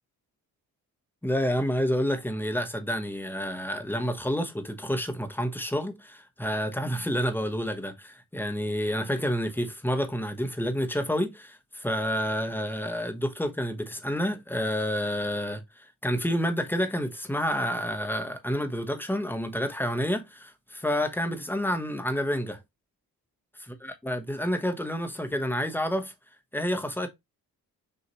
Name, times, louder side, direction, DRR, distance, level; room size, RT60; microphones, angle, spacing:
voice 1, 1.2-22.6 24.0-26.1 26.5-27.1, equal, 5° left, 1.0 m, -29 dB
5.4 x 2.8 x 3.0 m
supercardioid pair, 55°, 38 cm